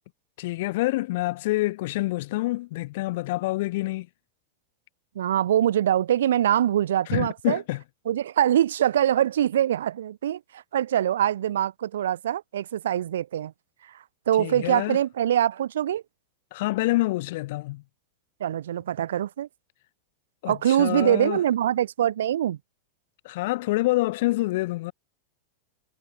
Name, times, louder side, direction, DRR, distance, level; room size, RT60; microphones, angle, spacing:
voice 1, 0.4-4.1 7.1-7.8 14.4-15.0 16.5-17.8 20.4-21.4 23.2-24.9, left 19 dB, 50° left, 0.4 m, -27 dB
voice 2, 5.2-7.6 8.1-13.5 14.3-16.0 18.4-19.5 20.5-22.6, right 11 dB, 60° right, 0.5 m, -23 dB
figure-of-eight pair, 90°, 0 cm